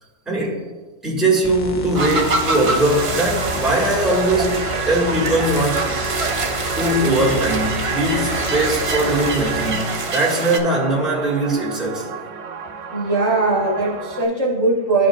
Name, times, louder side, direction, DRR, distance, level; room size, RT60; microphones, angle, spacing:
voice 1, 0.3-0.6 1.0-4.6 4.9-5.9 6.8-12.1, right 1 dB, ahead, -5 dB, 1.7 m, -20 dB
sound 1, 1.4-9.7, left 3 dB, 65° left, 0.4 m, -31 dB
sound 2, 1.9-10.6, right 3 dB, 40° right, 0.5 m, -26 dB
sound 3, 2.9-14.2, right 5 dB, 75° right, 0.9 m, -30 dB
voice 2, 12.9-15.1, right 2 dB, 55° right, -3 dB, 1.3 m, -19 dB
12.0 x 5.1 x 2.4 m, 1.3 s
omnidirectional pair, 1.3 m